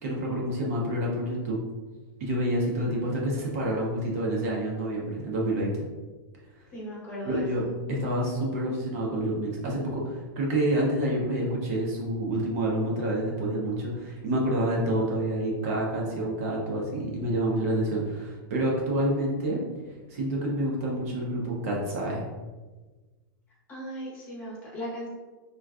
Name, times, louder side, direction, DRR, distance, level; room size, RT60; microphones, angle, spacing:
voice 1, 0.0-1.6 2.2-5.9 7.2-7.6 7.9-19.6 19.9-22.3, right 1 dB, 40° right, -3 dB, 0.6 m, -28 dB
voice 2, 6.7-7.7 23.7-25.1, equal, 20° left, -6 dB, 0.7 m, -37 dB
3.5 x 2.2 x 2.3 m, 1.3 s
supercardioid pair, 175°, 12 cm